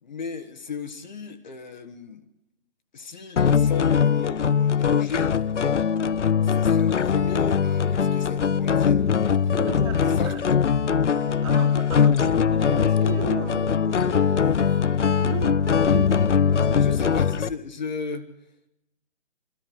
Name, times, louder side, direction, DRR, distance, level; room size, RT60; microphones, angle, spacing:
voice 1, 0.0-2.3 2.9-5.4 6.4-9.1 9.4-9.6 10.0-10.3 16.8-18.3, left 4 dB, 40° left, 7 dB, 1.8 m, -36 dB
sound 1, 3.4-17.5, left 7 dB, 80° left, 0.8 m, -21 dB
sound 2, 9.0-17.6, right 6 dB, 75° right, 1.3 m, -43 dB
voice 2, 9.6-10.4 10.9-14.5 15.2-16.2 16.6-17.1, right 5 dB, 25° right, 3 dB, 3.0 m, -36 dB
27.0 x 14.0 x 8.0 m, 0.86 s
hypercardioid pair, 165°, 35 cm